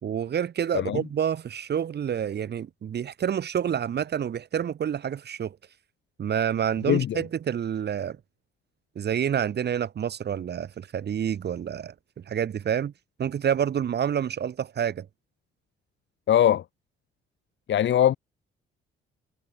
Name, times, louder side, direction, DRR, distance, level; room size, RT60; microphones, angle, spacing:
voice 1, 0.0-5.6 6.2-8.2 8.9-11.9 12.3-12.9 13.2-15.1, right 8 dB, 55° right, 3.2 m, -28 dB
voice 2, 6.9-7.2 16.3-16.6 17.7-18.2, left 10 dB, 70° left, 4.4 m, -21 dB
cardioid pair, 90°, 20 cm